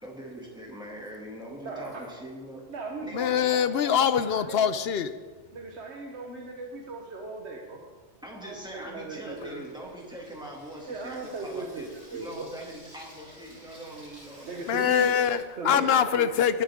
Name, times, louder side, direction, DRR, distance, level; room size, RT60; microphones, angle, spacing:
voice 1, 0.0-2.6 3.0-3.4 8.2-14.7, right 1 dB, 5° right, -3 dB, 2.3 m, -42 dB
voice 2, 1.6-2.1 2.7-4.7 5.5-7.8 8.4-9.6 10.9-11.8 12.1-12.5 14.4-15.1 15.6-16.2, right 3 dB, 70° right, 0 dB, 1.3 m, -38 dB
voice 3, 3.1-5.1 14.7-16.6, left 8 dB, 65° left, 12 dB, 0.8 m, -24 dB
Water tap faucet / Sink (filling or washing), 8.3-15.4, right 1 dB, 50° right, 3.0 m, -54 dB
19.5 x 7.5 x 3.6 m, 1.4 s
omnidirectional pair, 1.2 m